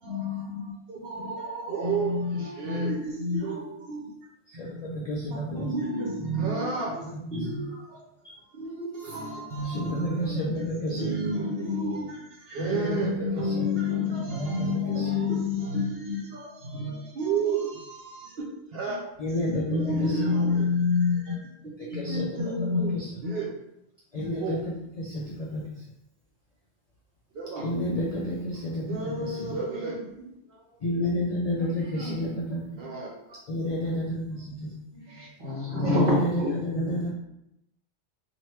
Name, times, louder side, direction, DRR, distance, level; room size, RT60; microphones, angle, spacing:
voice 1, 0.0-4.0 4.6-4.8 5.3-8.0 8.5-18.5 18.7-19.0 19.7-21.5 21.8-23.5 24.4-24.6 27.3-27.6 28.9-30.3 31.6-33.4 34.9-35.3 36.9-37.1, left 1 dB, 65° right, -2 dB, 0.9 m, -30 dB
voice 2, 4.5-5.7 7.0-7.5 7.7-7.8 8.2-8.3 9.6-11.1 12.6-13.7 14.3-14.7 14.9-15.1 19.2-20.3 21.8-22.5 22.9-23.1 24.1-25.9 27.6-29.6 30.8-32.6 33.5-34.7 35.8-36.3 36.6-37.1, left 1 dB, 50° left, -4 dB, 0.4 m, -31 dB
voice 3, 30.4-30.8 35.4-37.0, left 1 dB, 30° right, -6 dB, 1.1 m, -28 dB
3.0 x 2.4 x 3.1 m, 0.82 s
omnidirectional pair, 1.1 m